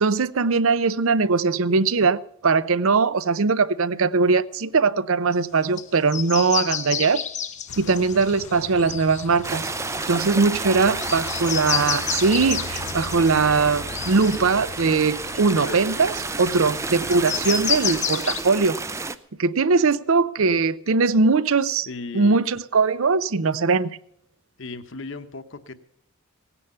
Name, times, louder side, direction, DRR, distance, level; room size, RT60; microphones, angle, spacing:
voice 1, 0.0-7.2 7.8-9.7 10.1-16.1 16.4-18.8 19.4-21.9 22.1-23.9, right 4 dB, 70° right, 0.6 m, -21 dB
sound 1, 5.8-5.9 6.1-10.3 11.0-15.5 16.0-16.1 17.1-18.4, left 8 dB, 30° left, 0.8 m, -30 dB
sound 2, 7.7-17.7, left 5 dB, 80° left, 0.5 m, -40 dB
sound 3, 9.4-19.2, right 3 dB, 15° right, 0.4 m, -31 dB
voice 2, 10.5-11.2 15.6-15.9 21.9-22.4 24.6-25.7, left 3 dB, 55° left, 1.0 m, -37 dB
17.5 x 10.0 x 5.6 m
head